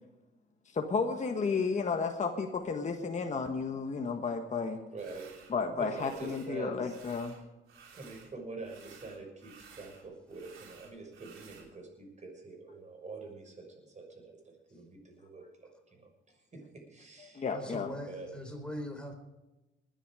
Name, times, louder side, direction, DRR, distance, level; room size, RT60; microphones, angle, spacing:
voice 1, 0.7-4.8 5.5-7.3 17.3-17.9, left 5 dB, 35° left, 4 dB, 1.4 m, -32 dB
voice 2, 4.9-5.3 5.8-7.0 7.9-17.5 18.1-18.3, right 3 dB, 35° right, 2 dB, 6.4 m, -46 dB
sound 1, 5.0-5.5 5.9-6.5 6.8-8.3 8.6-11.7, right 6 dB, 90° right, 3.3 m, -55 dB
voice 3, 17.5-19.1, left 1 dB, 5° left, 3 dB, 4.1 m, -41 dB
20.0 x 10.5 x 5.0 m, 1.0 s
cardioid pair, 90°, 20 cm